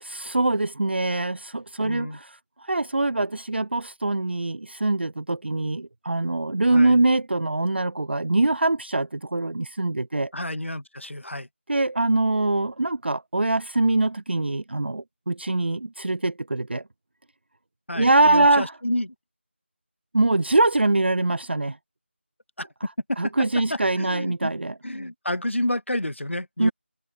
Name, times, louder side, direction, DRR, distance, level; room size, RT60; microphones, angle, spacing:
voice 1, 0.0-10.3 11.7-16.8 17.9-18.7 20.1-21.8 23.2-24.7 26.6-26.7, right 2 dB, 60° right, 0.4 m, -23 dB
voice 2, 1.8-2.2 6.7-7.0 10.3-11.5 17.9-19.1 22.6-22.7 23.1-23.2 23.7-24.5 24.8-26.7, left 1 dB, 75° left, 1.2 m, -30 dB
figure-of-eight pair, 170°, 7 cm